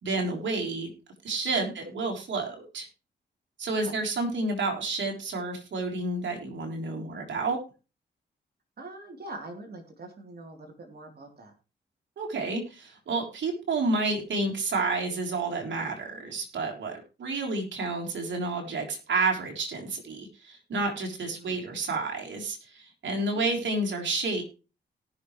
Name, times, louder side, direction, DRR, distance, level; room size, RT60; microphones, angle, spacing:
voice 1, 0.0-0.9 1.2-2.9 3.6-7.6 12.2-24.4, right 3 dB, 70° right, 1 dB, 3.5 m, -30 dB
voice 2, 3.7-4.0 8.8-11.5 21.3-21.6 23.3-23.6, right 2 dB, 55° right, 3 dB, 3.5 m, -43 dB
18.0 x 6.5 x 3.2 m, 0.32 s
supercardioid pair, 55°, 19 cm